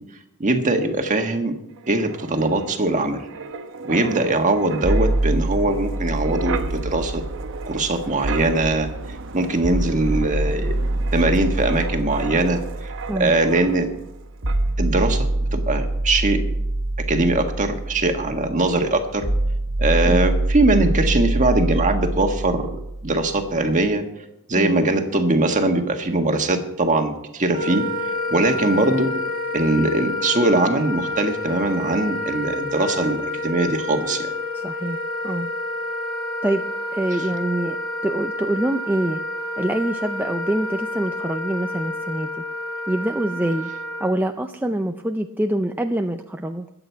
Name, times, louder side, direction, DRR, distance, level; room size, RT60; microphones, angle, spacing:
voice 1, 0.4-1.5 1.9-3.3 3.8-7.2 7.7-8.9 9.3-10.7 11.1-12.9 13.2-13.9 14.8-16.4 17.1-19.2 19.8-22.8 23.0-24.0 24.5-27.8 28.3-29.1 29.5-34.3, right 2 dB, 35° right, 4 dB, 1.6 m, -21 dB
Wind, 1.8-14.2 14.5-14.7, right 3 dB, 60° right, 0.9 m, -34 dB
sound 1, 4.8-8.8 9.6-23.7, right 1 dB, 80° right, 1.5 m, -25 dB
Wind instrument woodwind instrument, 27.5-44.1, left 2 dB, 70° left, 2.8 m, -29 dB
voice 2, 34.5-35.0 35.2-35.5 36.4-36.6 36.9-37.8 38.0-39.2 39.6-42.4 42.9-43.7 44.0-46.7, right 1 dB, 10° right, 5 dB, 0.5 m, -25 dB
22.0 x 8.8 x 4.6 m, 0.84 s
head